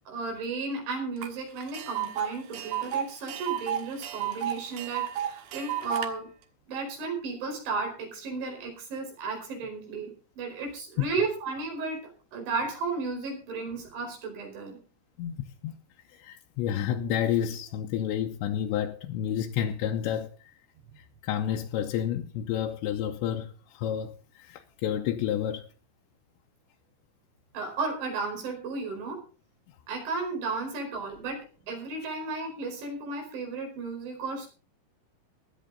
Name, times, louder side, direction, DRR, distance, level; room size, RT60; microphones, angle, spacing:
voice 1, 0.1-6.3 6.7-10.1 10.4-12.0 12.3-14.8 27.5-29.2 29.9-34.5, right 4 dB, 85° right, 7.1 m, -34 dB
Tick, 1.2-1.3 1.6-6.1, right 10 dB, 70° right, 3.3 m, -32 dB
voice 2, 15.2-15.8 16.1-20.6 21.0-25.7, left 10 dB, 80° left, 3.0 m, -30 dB
16.5 x 12.0 x 4.0 m
omnidirectional pair, 5.2 m